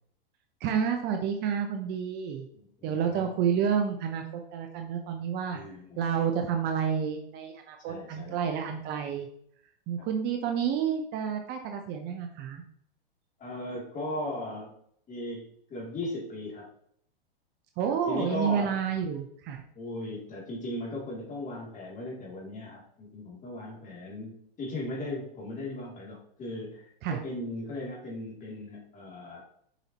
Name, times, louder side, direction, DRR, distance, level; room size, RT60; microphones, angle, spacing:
voice 1, 0.6-2.5 2.8-5.6 6.0-9.3 9.9-12.6 17.8-19.6 27.0-27.2, right 7 dB, 35° right, 5 dB, 0.8 m, -29 dB
voice 2, 2.5-3.3 5.5-6.1 7.9-8.8 10.0-10.1 13.4-14.7 15.1-16.7 17.9-18.8 19.7-26.8 27.1-29.4, left 1 dB, 25° left, -2 dB, 2.9 m, -37 dB
7.0 x 5.7 x 3.0 m, 0.66 s
hypercardioid pair, 115°, 30 cm